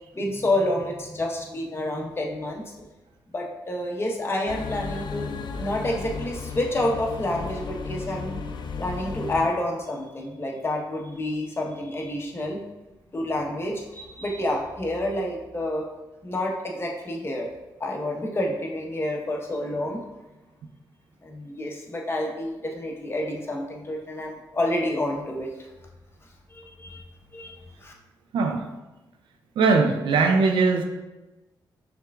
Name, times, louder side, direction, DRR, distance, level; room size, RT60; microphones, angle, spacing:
voice 1, 0.1-2.9 3.3-5.3 5.6-8.4 8.8-12.6 13.1-15.9 16.2-17.5 17.8-20.0 21.2-25.5 26.5-27.0 27.3-27.9, left 1 dB, 30° left, 0 dB, 1.0 m, -29 dB
sound 1, 4.5-9.5, left 5 dB, 65° left, 0.4 m, -34 dB
voice 2, 29.6-30.8, right 4 dB, 85° right, 5 dB, 0.4 m, -20 dB
5.7 x 3.5 x 2.4 m, 1.1 s
cardioid pair, 65°, 8 cm